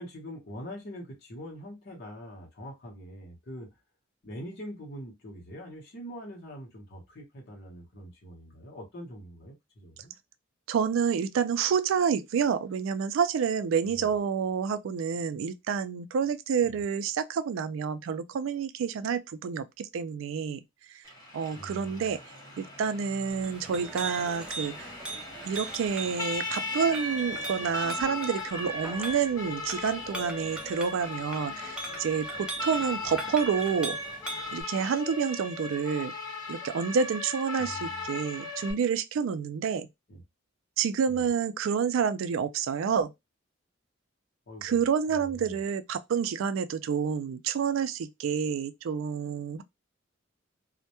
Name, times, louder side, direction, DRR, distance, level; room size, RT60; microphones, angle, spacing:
voice 1, 0.0-3.7 4.2-10.1 13.8-14.1 16.6-16.8 21.6-22.1 33.0-33.1 37.6-38.1 40.1-40.2 41.1-41.3 44.5-44.8 45.1-45.6, equal, 55° left, 0.8 m, -44 dB
voice 2, 10.7-20.6 21.3-22.2 22.6-24.9 25.4-34.0 34.5-36.1 36.5-39.9 40.8-43.1 44.6-49.6, right 6 dB, 75° right, 0.3 m, -29 dB
Siren, 21.0-38.7, left 2 dB, 20° left, 0.9 m, -37 dB
Chink clink, 23.3-34.6, right 2 dB, 5° right, 0.5 m, -41 dB
2.2 x 2.1 x 2.8 m
head